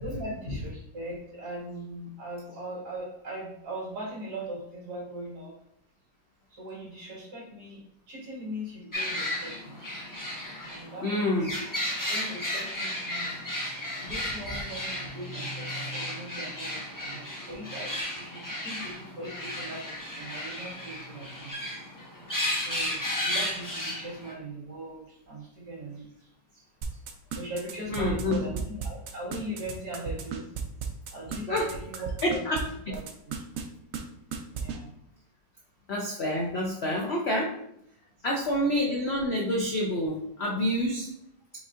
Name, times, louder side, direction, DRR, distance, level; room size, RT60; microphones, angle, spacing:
voice 1, 0.0-5.5 6.5-9.8 10.7-11.6 12.1-13.4 14.0-21.5 22.6-26.6 26.9-27.0 27.3-30.5 30.8-32.6 32.9-33.4 34.5-34.9, right 1 dB, 60° right, -6 dB, 2.4 m, -40 dB
sound 1, 8.9-24.3, left 1 dB, 15° left, 0.7 m, -34 dB
voice 2, 11.0-11.5 27.9-28.4 31.5-31.6 32.2-32.6 35.9-37.5 38.2-41.1, left 1 dB, 80° left, -2 dB, 0.5 m, -27 dB
sound 2, 26.8-32.6 32.9-33.6 33.9-34.0 34.3-34.8, right 7 dB, 80° right, 0.7 m, -35 dB
5.1 x 3.9 x 2.4 m, 0.73 s
omnidirectional pair, 2.0 m